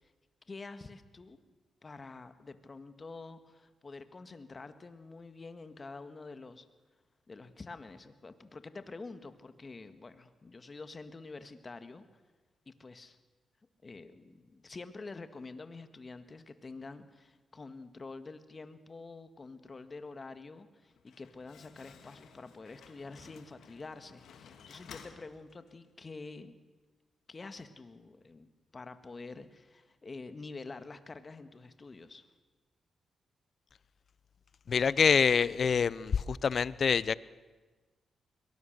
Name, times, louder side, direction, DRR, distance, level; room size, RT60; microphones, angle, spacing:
voice 1, 0.5-1.4 1.8-6.7 7.3-12.0 12.6-13.2 13.8-26.5 27.3-32.3, left 3 dB, 40° left, 10 dB, 1.7 m, -47 dB
Slam, 20.8-25.9, left 7 dB, 80° left, 1.8 m, -55 dB
voice 2, 34.7-37.1, left 6 dB, 60° left, 20 dB, 0.6 m, -26 dB
22.5 x 19.0 x 6.7 m, 1.3 s
cardioid pair, 60°, 0 cm